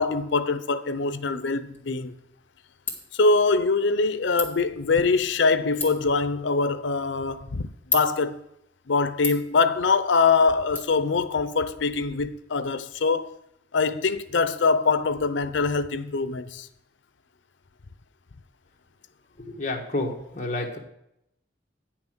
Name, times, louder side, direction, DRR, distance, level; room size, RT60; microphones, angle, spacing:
voice 1, 0.0-2.1 3.1-8.4 8.9-13.4 13.7-16.7, left 4 dB, 85° left, 0.6 m, -23 dB
Ratchet pawl, 1.7-10.8, left 4 dB, 10° left, 1.7 m, -38 dB
voice 2, 19.5-20.8, left 2 dB, 40° left, 1.5 m, -29 dB
9.5 x 5.9 x 6.0 m
head